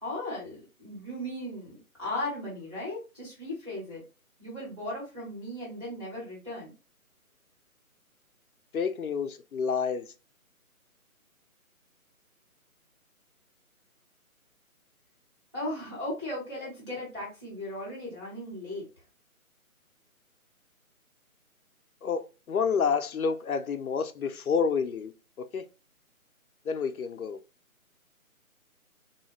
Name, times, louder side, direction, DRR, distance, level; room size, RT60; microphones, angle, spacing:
voice 1, 0.0-4.0 4.4-6.7 15.5-18.8, left 1 dB, 20° right, 1.1 m, -37 dB
voice 2, 8.7-10.1 22.0-25.1 25.4-25.7 26.7-27.4, left 6 dB, 75° left, 0.6 m, -29 dB
2.7 x 2.3 x 3.1 m
hypercardioid pair, 180°, 44 cm